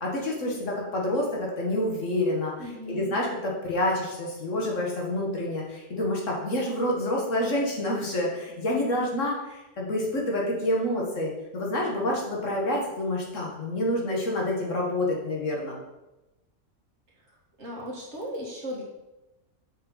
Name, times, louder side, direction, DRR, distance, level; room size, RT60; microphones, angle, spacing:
voice 1, 0.0-2.5 2.9-15.8, left 1 dB, 65° left, -2 dB, 1.9 m, -28 dB
voice 2, 2.6-3.2 17.6-18.8, equal, 55° right, -3 dB, 2.0 m, -36 dB
7.1 x 5.6 x 4.0 m, 0.98 s
omnidirectional pair, 1.4 m